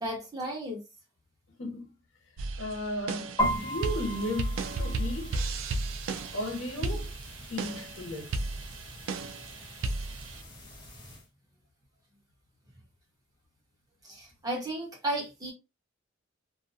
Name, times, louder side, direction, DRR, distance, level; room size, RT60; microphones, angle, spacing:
voice 1, 0.0-0.8 14.0-15.5, right 1 dB, 20° right, 1.2 m, -34 dB
voice 2, 1.6-2.0 2.6-5.4 6.3-7.2 7.5-8.4, left 1 dB, 75° left, 0.9 m, -35 dB
sound 1, 2.4-10.4, right 3 dB, 85° right, 0.4 m, -34 dB
sound 2, 3.4-11.2, equal, 25° left, 1.1 m, -38 dB
2.6 x 2.2 x 2.6 m
head